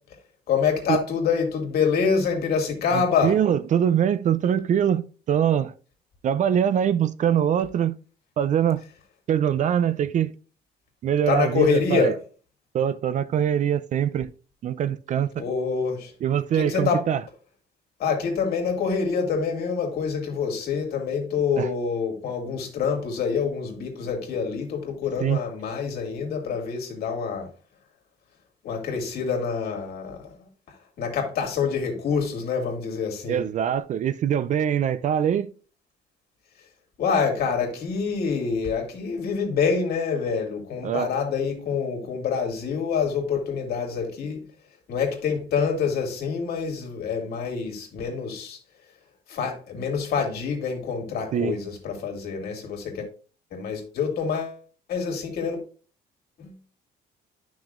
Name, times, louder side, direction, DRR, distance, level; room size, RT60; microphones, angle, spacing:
voice 1, 0.5-3.4 11.3-12.1 15.4-16.1 16.5-17.0 18.0-27.5 28.6-30.5 31.0-33.4 37.0-44.5 44.9-48.6 49.3-53.1 53.5-54.6 54.9-55.6 56.4-56.5, left 6 dB, 65° left, 2.6 m, -26 dB
voice 2, 2.9-5.7 6.2-8.0 8.4-8.8 9.3-10.3 11.0-12.1 12.7-14.3 14.6-15.4 16.2-17.2 21.6-21.7 25.2-25.4 33.3-35.5 40.8-41.1 51.3-51.5, right 9 dB, 45° right, 0.5 m, -23 dB
10.0 x 6.2 x 2.5 m
cardioid pair, 110°, 17 cm